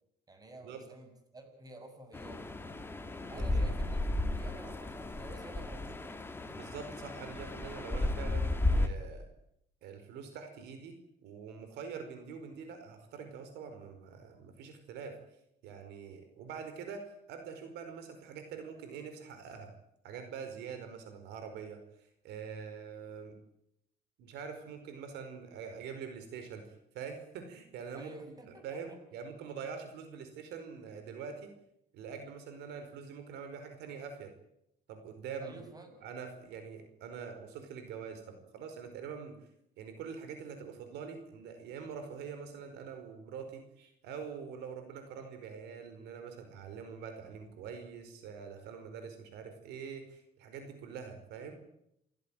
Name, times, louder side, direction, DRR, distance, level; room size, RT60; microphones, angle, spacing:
voice 1, 0.3-2.9 3.3-6.2 27.9-29.0 35.4-36.0, right 2 dB, 20° right, 7 dB, 6.7 m, -51 dB
sound 1, 2.1-8.9, left 2 dB, 15° left, 2.6 m, -34 dB
voice 2, 3.3-3.7 6.5-9.3 9.8-15.2 15.6-19.7 20.0-23.4 24.2-31.5 31.9-34.3 34.9-35.6 36.0-39.4 39.8-51.6, right 6 dB, 85° right, 7 dB, 5.0 m, -45 dB
28.5 x 16.0 x 9.2 m, 0.78 s
cardioid pair, 110°, 17 cm